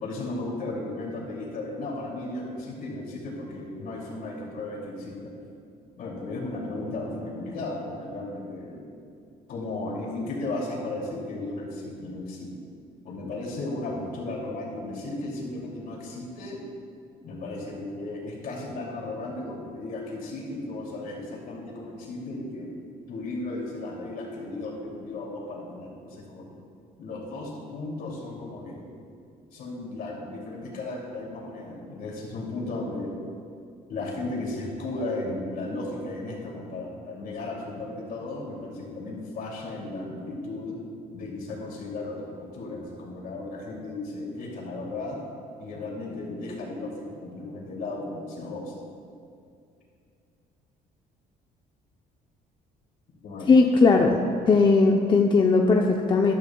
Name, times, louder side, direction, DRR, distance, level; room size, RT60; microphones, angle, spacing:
voice 1, 0.0-5.3 6.0-8.9 9.5-12.5 13.0-16.6 17.2-22.7 23.1-26.6 27.0-29.0 29.5-33.1 33.9-40.8 41.1-45.2 45.6-48.7 53.2-53.5, left 2 dB, 60° left, -2 dB, 2.6 m, -35 dB
voice 2, 53.5-54.2 54.5-56.3, left 4 dB, 30° left, 2 dB, 0.6 m, -18 dB
13.0 x 12.0 x 2.3 m, 2.4 s
cardioid pair, 110°, 17 cm